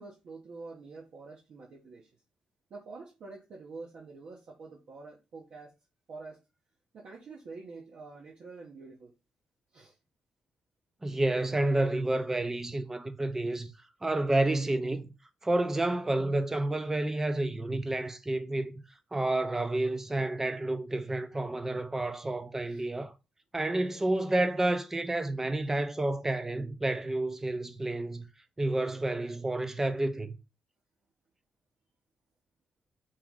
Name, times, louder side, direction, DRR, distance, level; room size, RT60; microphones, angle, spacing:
voice 1, 0.0-2.1 2.7-5.7 6.1-6.4 6.9-9.1 9.7-10.0 22.7-22.8, right 3 dB, 60° right, 1.0 m, -47 dB
voice 2, 11.0-13.7 14.0-15.1 15.4-18.7 19.1-23.1 23.5-28.2 28.6-30.4, right 2 dB, 15° right, 0.6 m, -30 dB
4.6 x 3.1 x 3.6 m
cardioid pair, 130°, 3 cm